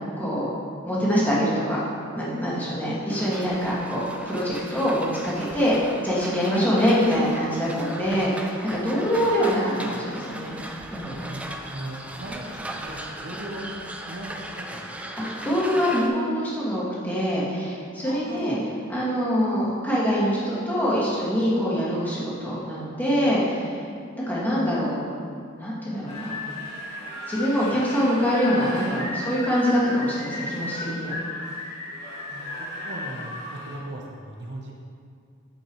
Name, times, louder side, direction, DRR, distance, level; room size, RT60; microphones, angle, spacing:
voice 1, 0.2-0.5 0.8-1.8 2.1-10.5 10.9-11.3 15.2-18.6 18.9-23.7 24.1-25.0 25.5-26.4 27.3-31.1, equal, 10° left, -9 dB, 2.0 m, -24 dB
sound 1, 3.1-16.1, right 1 dB, 5° right, 0.4 m, -38 dB
voice 2, 11.7-13.7 14.1-14.4 14.7-14.8 18.0-18.6 23.4-23.8 32.3-32.5 32.8-34.7, right 1 dB, 55° right, -2 dB, 0.9 m, -37 dB
sound 2, 26.1-33.8, left 2 dB, 35° left, 2.1 m, -35 dB
9.5 x 7.2 x 3.2 m, 2.2 s
head